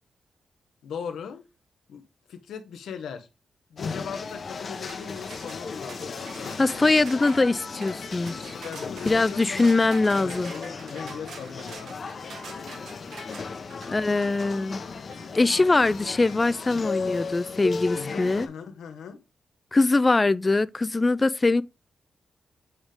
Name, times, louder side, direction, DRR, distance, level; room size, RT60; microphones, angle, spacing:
voice 1, 0.8-1.4 1.9-2.0 2.3-3.3 3.7-6.9 8.5-9.7 10.2-12.1 17.9-19.2, left 7 dB, 90° left, 1.0 m, -39 dB
sound 1, 3.8-18.5, left 4 dB, 50° left, 0.9 m, -36 dB
sound 2, 4.9-15.3, right 4 dB, 85° right, 1.5 m, -46 dB
sound 3, 5.7-16.9, left 4 dB, 70° left, 2.0 m, -48 dB
voice 2, 6.6-8.5 9.1-10.5 13.9-14.8 15.3-18.5 19.7-21.6, left 3 dB, 25° left, 0.3 m, -22 dB
7.9 x 3.7 x 3.5 m
cardioid pair, 80°, 0 cm